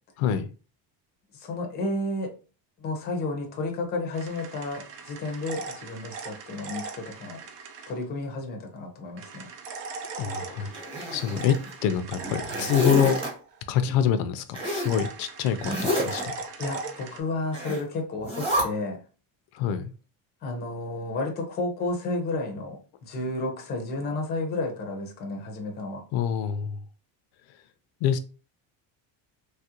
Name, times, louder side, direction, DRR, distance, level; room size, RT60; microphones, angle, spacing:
voice 1, 0.2-0.5 10.2-10.8 11.1-11.5 11.8-13.2 13.7-16.5 19.6-19.9 26.1-26.7 28.0-28.2, left 9 dB, 75° left, 0.5 m, -26 dB
voice 2, 1.3-2.3 2.8-7.4 7.9-9.5 13.9-14.0 16.6-19.0 20.4-26.0, left 2 dB, 20° left, 0.5 m, -32 dB
sound 1, 4.1-7.9 9.2-13.8 14.7-17.2, right 4 dB, 65° right, 0.7 m, -39 dB
Zipper (clothing), 10.7-11.7 12.2-13.3 14.5-15.0 15.6-16.2 17.5-17.8 18.2-18.6, equal, 10° right, 1.0 m, -28 dB
3.2 x 2.4 x 2.8 m
cardioid pair, 170°, 47 cm